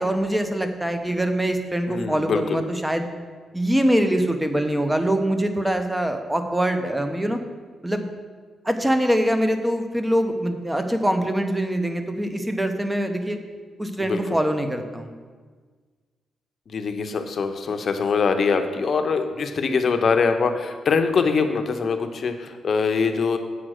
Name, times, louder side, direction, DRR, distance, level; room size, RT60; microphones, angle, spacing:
voice 1, 0.0-3.1 3.5-7.4 7.8-8.1 8.6-13.4 13.8-15.1, right 1 dB, 10° right, 6 dB, 0.7 m, -23 dB
voice 2, 1.9-2.6 14.0-14.2 16.7-23.4, left 5 dB, 50° left, 6 dB, 0.7 m, -23 dB
7.6 x 5.0 x 6.4 m, 1.5 s
cardioid pair, 115°, 0 cm